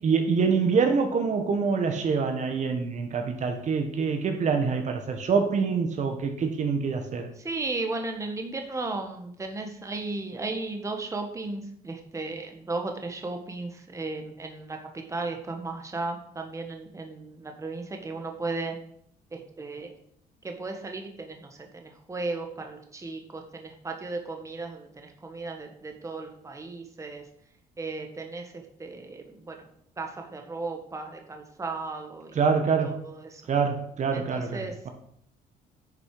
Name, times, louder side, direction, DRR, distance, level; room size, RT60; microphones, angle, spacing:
voice 1, 0.0-7.3 32.3-33.0 33.5-34.9, right 5 dB, 45° right, 5 dB, 1.5 m, -25 dB
voice 2, 7.4-18.8 19.3-19.9 20.4-27.2 27.8-29.6 30.0-32.4 32.8-33.4 34.1-34.9, right 3 dB, 20° right, 3 dB, 1.6 m, -35 dB
10.5 x 6.5 x 5.0 m, 0.67 s
cardioid pair, 110°, 17 cm